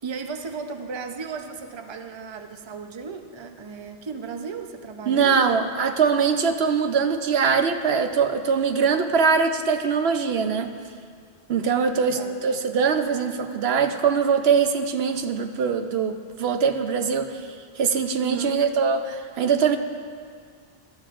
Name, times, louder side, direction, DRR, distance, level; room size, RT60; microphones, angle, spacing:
voice 1, 0.0-5.5 11.8-12.4 18.2-18.7, right 5 dB, 30° right, 6 dB, 0.6 m, -35 dB
voice 2, 5.1-10.7 11.5-17.4 17.8-19.8, right 6 dB, 80° right, 7 dB, 1.0 m, -22 dB
21.0 x 12.5 x 2.5 m, 2.1 s
omnidirectional pair, 1.1 m